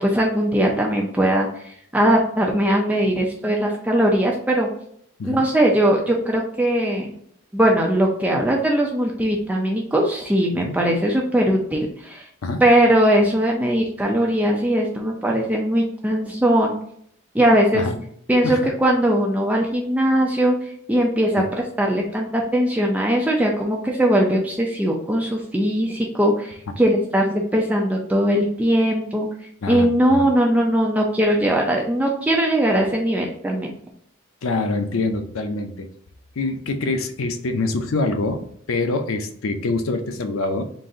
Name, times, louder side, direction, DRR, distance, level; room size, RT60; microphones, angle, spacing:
voice 1, 0.0-1.5 1.9-4.7 5.2-7.1 7.5-12.2 12.6-16.8 17.3-17.9 18.3-20.6 20.9-21.4 21.8-29.3 29.7-33.7, right 1 dB, 5° right, -1 dB, 0.4 m, -20 dB
voice 2, 29.6-30.2 34.4-35.9 36.4-40.6, left 3 dB, 85° left, 7 dB, 0.5 m, -25 dB
3.9 x 2.5 x 3.7 m, 0.66 s
head